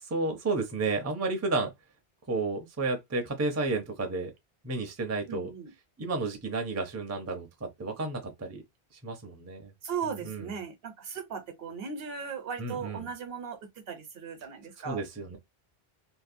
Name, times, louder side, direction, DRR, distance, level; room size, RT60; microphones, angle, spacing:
voice 1, 0.0-1.7 2.3-4.3 4.6-5.5 6.0-8.6 9.0-9.7 10.2-10.5 12.6-13.1 14.8-15.4, right 3 dB, 20° right, 0.5 m, -32 dB
voice 2, 5.3-5.7 9.8-13.6 13.9-15.0, right 6 dB, 70° right, 0.9 m, -37 dB
2.8 x 2.1 x 2.5 m
omnidirectional pair, 1.0 m